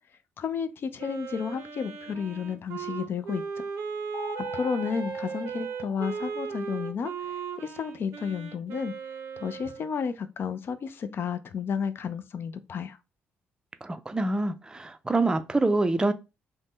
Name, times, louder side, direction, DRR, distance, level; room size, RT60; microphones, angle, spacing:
voice 1, 0.4-3.6 4.5-8.9 9.4-13.0, left 6 dB, 55° left, 0.4 m, -32 dB
Wind instrument woodwind instrument, 1.0-9.9, right 6 dB, 75° right, 0.5 m, -37 dB
sound 1, 4.1-6.6, left 2 dB, 90° left, 0.8 m, -42 dB
voice 2, 13.8-16.1, right 2 dB, 15° right, 0.4 m, -26 dB
2.6 x 2.1 x 3.5 m
supercardioid pair, 65°, 5 cm